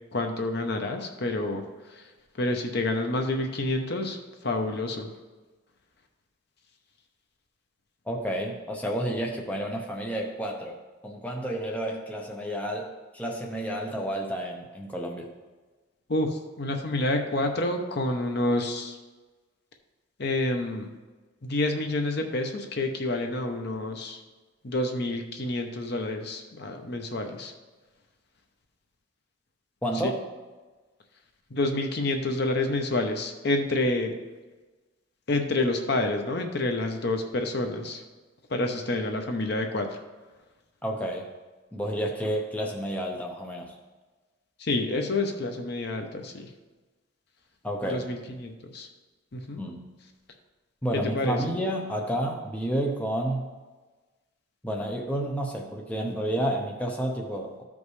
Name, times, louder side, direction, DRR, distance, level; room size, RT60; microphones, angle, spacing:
voice 1, 0.1-1.6 1.9-2.1 2.4-4.2 4.4-5.1 16.1-19.0 20.2-20.9 21.4-24.2 24.6-27.5 30.0-30.1 31.5-34.1 35.3-38.0 38.5-40.0 44.6-46.5 47.9-48.9 49.3-49.6 50.9-51.4, left 2 dB, 50° left, 4 dB, 0.8 m, -28 dB
voice 2, 8.1-10.8 11.0-15.3 29.8-30.2 40.8-41.3 41.7-43.7 47.6-48.0 49.6-49.9 50.8-53.5 54.6-57.5, right 1 dB, 5° left, 0 dB, 0.6 m, -30 dB
13.5 x 5.3 x 3.2 m, 1.3 s
head